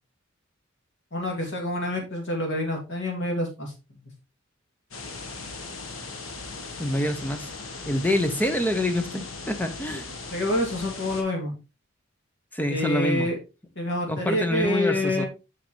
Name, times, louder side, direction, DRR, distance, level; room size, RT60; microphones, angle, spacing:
voice 1, 1.1-3.7 10.3-11.5 12.7-13.4 13.8-15.3, left 1 dB, 60° left, 2.2 m, -27 dB
sound 1, 4.9-11.2, left 3 dB, 80° left, 1.3 m, -38 dB
voice 2, 6.8-7.5 7.9-10.1 12.5-13.3 14.1-15.2, left 1 dB, 10° left, 0.7 m, -26 dB
6.3 x 5.8 x 3.1 m
head